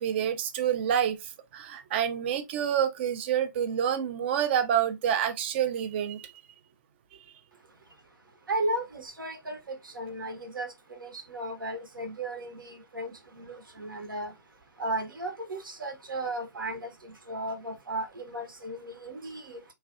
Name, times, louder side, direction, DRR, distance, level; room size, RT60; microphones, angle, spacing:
voice 1, 0.0-6.3, right 9 dB, 30° right, 0.5 m, -28 dB
voice 2, 8.5-14.3 14.8-19.6, right 1 dB, 75° right, 1.0 m, -35 dB
3.1 x 2.4 x 2.4 m
figure-of-eight pair, 135°, 11 cm